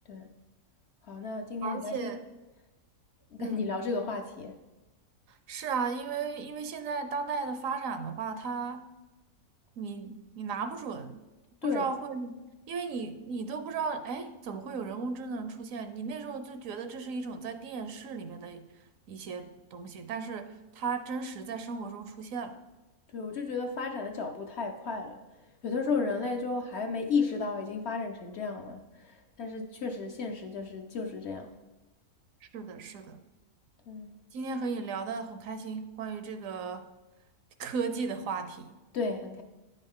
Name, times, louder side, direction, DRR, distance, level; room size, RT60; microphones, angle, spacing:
voice 1, 1.0-2.2 3.3-4.6 11.6-11.9 23.1-25.2 25.6-31.6 33.9-34.1 38.9-39.4, left 4 dB, 60° left, 4 dB, 0.8 m, -33 dB
voice 2, 1.6-2.2 3.4-3.7 5.3-8.9 9.8-11.2 11.6-18.7 19.1-22.6 32.4-33.2 34.3-36.9 37.6-38.8, right 5 dB, 70° right, 9 dB, 1.0 m, -36 dB
9.8 x 5.5 x 3.6 m, 1.1 s
omnidirectional pair, 1.5 m